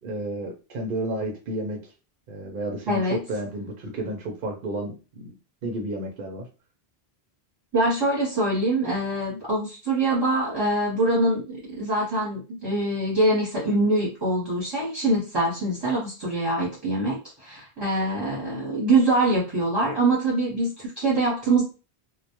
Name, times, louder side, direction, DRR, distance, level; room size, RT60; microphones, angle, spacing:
voice 1, 0.0-1.9 2.3-5.4 5.6-6.5, right 1 dB, 60° right, 2 dB, 0.7 m, -32 dB
voice 2, 2.9-3.2 7.7-21.6, right 2 dB, 25° right, -6 dB, 0.8 m, -24 dB
2.1 x 2.1 x 2.8 m, 0.32 s
omnidirectional pair, 1.1 m